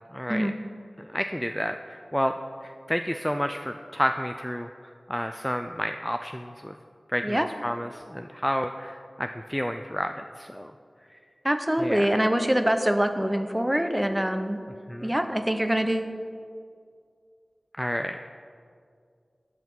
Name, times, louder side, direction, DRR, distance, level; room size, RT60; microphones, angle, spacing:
voice 1, 0.1-0.5 1.0-6.7 7.1-10.7 11.1-11.2 11.8-12.1 14.9-15.1 17.8-18.2, equal, 5° left, 6 dB, 0.3 m, -30 dB
voice 2, 11.4-14.6 15.0-16.1, equal, 10° right, 8 dB, 0.7 m, -24 dB
12.5 x 6.0 x 4.6 m, 2.2 s
wide cardioid pair, 45°, 0 cm